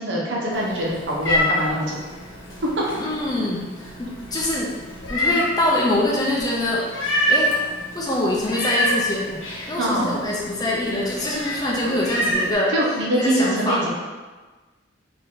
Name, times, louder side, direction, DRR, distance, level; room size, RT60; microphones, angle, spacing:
voice 1, 0.0-2.0 9.8-10.1 12.7-13.9, right 1 dB, 70° right, -4 dB, 1.0 m, -24 dB
Meow, 0.5-12.5, left 1 dB, 90° left, 1.0 m, -27 dB
voice 2, 3.0-4.7 5.1-7.6 7.9-9.3 9.7-12.7 13.1-13.8, left 1 dB, 20° left, -3 dB, 0.6 m, -24 dB
4.3 x 2.8 x 3.7 m, 1.3 s
head